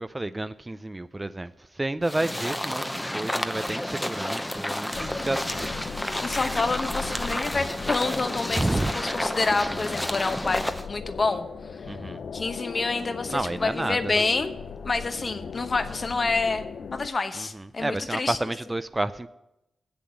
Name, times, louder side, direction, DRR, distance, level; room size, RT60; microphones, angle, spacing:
voice 1, 0.0-5.9 8.6-8.9 11.9-12.2 13.3-14.2 17.3-19.3, right 2 dB, 25° right, 0.4 m, -30 dB
sound 1, 2.0-10.9, left 1 dB, 10° left, 0.8 m, -31 dB
sound 2, 4.9-17.1, left 6 dB, 70° left, 0.5 m, -38 dB
voice 2, 6.2-8.6 9.0-11.5 11.7-11.8 12.3-14.5 14.8-18.4, left 3 dB, 45° left, 1.0 m, -28 dB
7.7 x 7.0 x 7.5 m
supercardioid pair, 50°, 0 cm